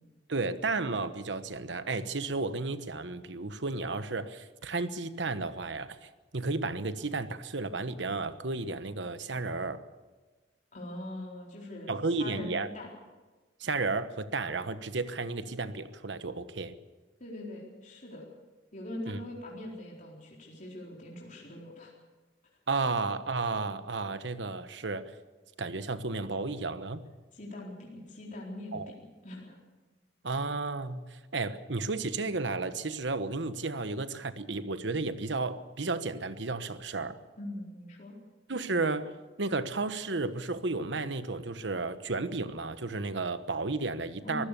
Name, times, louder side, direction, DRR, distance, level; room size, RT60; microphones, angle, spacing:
voice 1, 0.3-6.0 6.3-9.8 11.9-12.7 13.6-16.7 19.1-19.2 22.7-25.1 25.6-27.0 28.7-28.9 30.2-31.0 31.3-37.2 38.5-39.1 39.4-44.4, right 3 dB, 70° right, 12 dB, 1.1 m, -33 dB
voice 2, 10.7-11.9 12.2-12.9 17.2-18.3 18.7-21.9 27.3-28.9 29.2-29.6 37.4-38.2 44.2-44.5, left 1 dB, 45° left, -3 dB, 4.2 m, -42 dB
24.0 x 16.0 x 6.9 m, 1.3 s
head